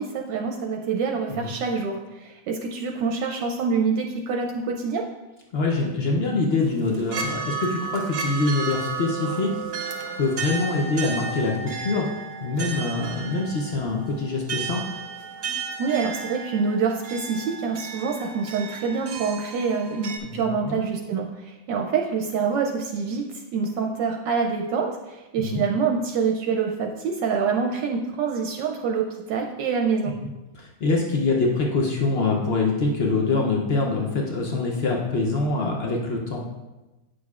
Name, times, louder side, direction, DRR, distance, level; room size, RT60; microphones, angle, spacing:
voice 1, 0.0-5.0 15.8-23.3 23.5-30.1, right 5 dB, 75° right, 2 dB, 1.2 m, -26 dB
voice 2, 5.5-9.5 10.2-12.1 12.4-15.0 20.2-20.8 25.4-25.6 30.0-30.1 30.5-36.4, left 3 dB, 80° left, -1 dB, 0.5 m, -24 dB
sound 1, 6.6-20.2, right 5 dB, 60° right, 1.0 m, -33 dB
9.5 x 6.3 x 2.4 m, 1.1 s
omnidirectional pair, 2.0 m